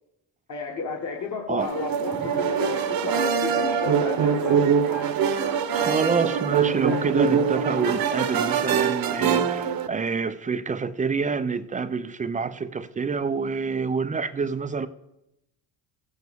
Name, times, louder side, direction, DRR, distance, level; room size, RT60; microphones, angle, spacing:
voice 1, 0.5-4.7, left 4 dB, 40° left, 1.4 m, -32 dB
sound 1, 1.2-1.9 2.2-3.7 4.0-5.1 5.4-6.5 6.8-7.9 8.2-8.5, left 8 dB, 70° left, 1.4 m, -41 dB
sound 2, 1.6-9.9, right 7 dB, 50° right, 0.9 m, -23 dB
voice 2, 5.7-14.9, right 5 dB, 20° right, 0.3 m, -27 dB
15.0 x 8.2 x 3.5 m
cardioid pair, 115°, 46 cm